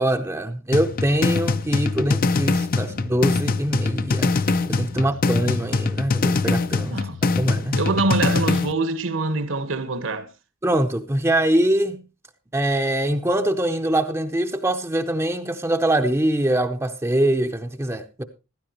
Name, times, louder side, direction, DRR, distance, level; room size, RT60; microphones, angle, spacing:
voice 1, 0.0-4.3 4.7-6.9 7.4-7.8 10.6-12.0 12.5-18.2, right 1 dB, 15° right, 0.7 m, -23 dB
sound 1, 0.7-8.7, left 3 dB, 40° left, 0.6 m, -23 dB
voice 2, 6.9-7.2 7.8-10.3, right 3 dB, 65° right, 1.3 m, -25 dB
15.0 x 12.5 x 3.0 m
head